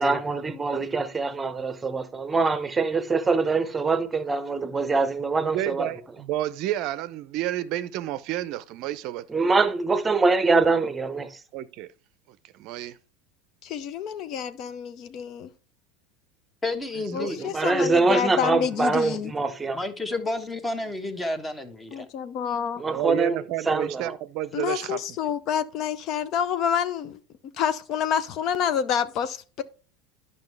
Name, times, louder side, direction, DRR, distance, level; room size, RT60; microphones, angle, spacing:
voice 1, 0.0-5.9 9.3-11.4 17.4-19.8 22.8-24.0, right 3 dB, 15° right, 0.9 m, -24 dB
voice 2, 5.3-9.3 11.5-11.9 12.3-13.0 17.1-17.9 22.8-25.0, right 13 dB, 55° right, 0.5 m, -31 dB
voice 3, 13.6-15.5 17.1-19.3 21.9-22.8 24.5-27.2 27.6-29.6, left 8 dB, 50° left, 0.6 m, -28 dB
voice 4, 16.6-17.4 19.7-22.1, left 2 dB, 15° left, 1.2 m, -31 dB
10.5 x 5.5 x 3.3 m
hypercardioid pair, 85°, 0 cm